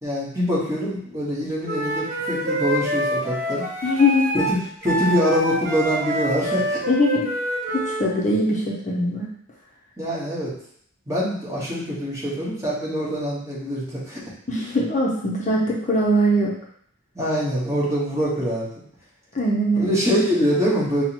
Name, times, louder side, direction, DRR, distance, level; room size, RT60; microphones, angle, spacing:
voice 1, 0.0-3.6 4.3-6.8 10.0-10.5 11.1-14.2 17.1-18.7 19.8-21.0, equal, 15° right, -6 dB, 1.1 m, -24 dB
Wind instrument woodwind instrument, 1.6-8.1, right 1 dB, 45° right, 0.7 m, -26 dB
voice 2, 3.8-4.3 6.9-7.3 7.7-9.3 14.5-16.5 19.3-20.0, equal, 35° left, -3 dB, 0.5 m, -21 dB
5.6 x 2.1 x 2.8 m, 0.66 s
head